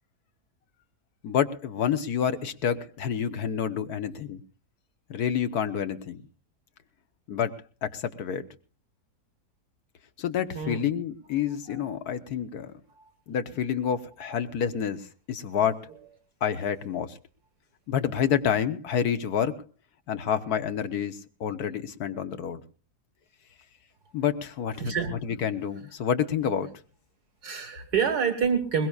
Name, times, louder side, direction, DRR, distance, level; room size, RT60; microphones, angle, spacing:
voice 1, 1.2-4.4 5.1-6.2 7.3-7.5 7.8-8.4 10.2-12.7 13.3-15.0 15.3-15.9 16.4-17.2 17.9-19.5 20.1-22.6 24.1-24.9 25.2-26.7, left 8 dB, 65° left, 9 dB, 1.5 m, -28 dB
voice 2, 24.8-25.3 27.4-28.9, right 6 dB, 70° right, 6 dB, 2.1 m, -27 dB
22.0 x 21.0 x 2.4 m, 0.36 s
omnidirectional pair, 1.8 m